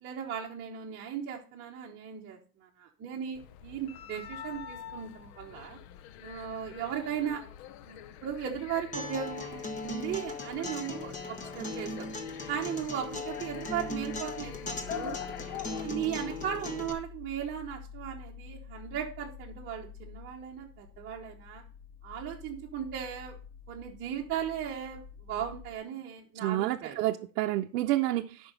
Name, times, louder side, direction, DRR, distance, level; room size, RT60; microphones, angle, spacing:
voice 1, 0.0-5.8 6.2-7.4 7.9-12.1 12.5-15.2 15.8-21.6 22.0-23.4 23.7-27.0, right 9 dB, 25° right, 1.0 m, -37 dB
sound 1, 3.3-15.8, left 10 dB, 45° left, 0.6 m, -46 dB
Acoustic guitar, 8.9-16.9, left 2 dB, 15° left, 0.8 m, -38 dB
sound 2, 13.0-25.8, left 7 dB, 75° left, 3.3 m, -50 dB
voice 2, 26.4-28.5, right 15 dB, 80° right, 0.7 m, -29 dB
8.6 x 5.5 x 5.4 m
supercardioid pair, 140°, 48 cm